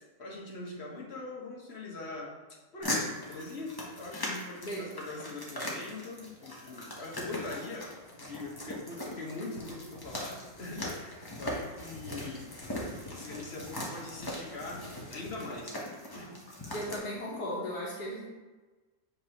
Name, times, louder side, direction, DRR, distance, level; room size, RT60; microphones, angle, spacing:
voice 1, 0.2-2.4 2.7-12.5 13.1-15.8 16.1-16.4, left 2 dB, 40° left, -3 dB, 1.4 m, -42 dB
sound 1, 2.8-17.0, left 1 dB, 15° left, 0.8 m, -40 dB
voice 2, 16.7-18.3, equal, 60° left, -7 dB, 1.7 m, -36 dB
7.3 x 4.7 x 3.0 m, 1.2 s
omnidirectional pair, 1.9 m